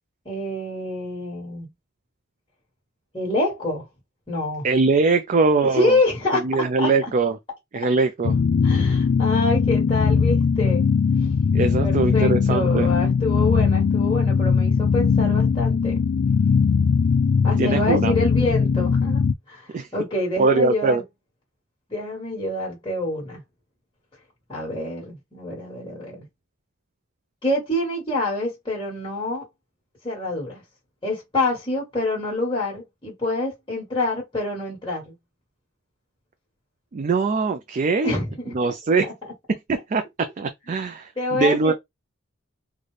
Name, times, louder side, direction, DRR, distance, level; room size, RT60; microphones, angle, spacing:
voice 1, 0.2-1.7 3.1-3.9 4.3-4.7 5.7-7.1 8.6-10.9 11.8-16.0 17.4-21.0 21.9-23.4 24.5-26.3 27.4-29.4 30.0-30.6 31.0-35.1 38.0-38.5 39.0-39.1 41.2-41.7, left 2 dB, 25° left, 1.4 m, -26 dB
voice 2, 4.6-5.9 6.3-7.4 7.7-8.4 11.5-12.9 17.6-18.1 19.7-19.9 20.4-21.0 36.9-38.2 38.5-39.1 39.7-41.7, right 3 dB, 35° right, 0.4 m, -22 dB
sound 1, 8.2-19.3, left 5 dB, 55° left, 0.3 m, -20 dB
4.0 x 2.2 x 3.2 m
head